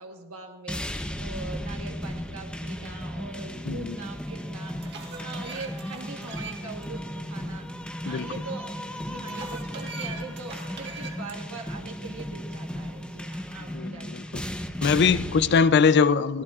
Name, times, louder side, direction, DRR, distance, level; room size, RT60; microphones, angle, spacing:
voice 1, 0.0-7.7 8.0-14.5, right 3 dB, 85° right, 1.3 m, -42 dB
sound 1, 0.7-15.7, equal, 5° left, 0.7 m, -35 dB
voice 2, 3.7-4.0 8.1-8.3 13.7-14.4 14.8-16.4, left 5 dB, 50° left, 0.4 m, -22 dB
sound 2, 3.9-4.0 4.5-6.9 7.2-7.3 9.2-11.4, right 5 dB, 50° right, 1.6 m, -42 dB
23.0 x 16.0 x 2.4 m
head